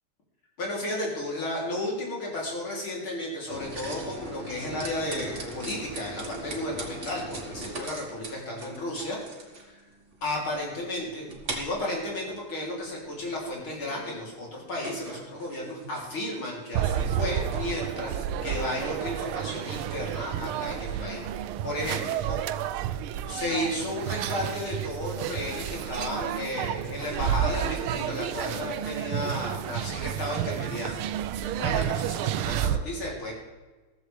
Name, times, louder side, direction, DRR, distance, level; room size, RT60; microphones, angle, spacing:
voice 1, 0.6-9.2 9.7-9.8 10.2-11.3 11.5-21.3 21.6-22.4 23.3-31.0 31.4-33.3, left 1 dB, 70° left, -3 dB, 4.1 m, -33 dB
sound 1, 3.5-20.5, right 2 dB, 35° right, 1.8 m, -41 dB
sound 2, 16.7-32.8, right 10 dB, 80° right, 1.5 m, -30 dB
14.5 x 14.5 x 3.4 m, 1.3 s
omnidirectional pair, 2.4 m